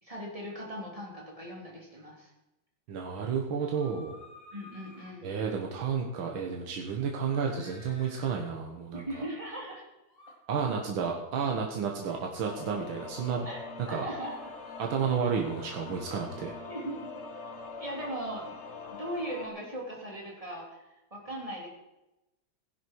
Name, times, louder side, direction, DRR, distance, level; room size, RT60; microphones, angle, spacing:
voice 1, 0.0-2.3 4.5-5.3 8.9-9.8 13.4-13.6 13.9-14.5 16.7-17.1 17.8-18.6 18.9-21.7, right 1 dB, 15° right, -3 dB, 3.5 m, -39 dB
voice 2, 2.9-4.1 5.2-9.0 10.5-13.5 13.9-14.1 14.8-16.5, right 6 dB, 80° right, 1 dB, 2.1 m, -31 dB
sound 1, 3.6-5.1 7.3-8.4 10.1-10.3 11.9-12.2 14.2-16.1 17.9-18.0, left 1 dB, 25° left, 6.3 m, -54 dB
sound 2, 12.4-19.5, left 4 dB, 45° left, 1.1 m, -43 dB
16.0 x 11.0 x 4.7 m, 0.95 s
omnidirectional pair, 2.2 m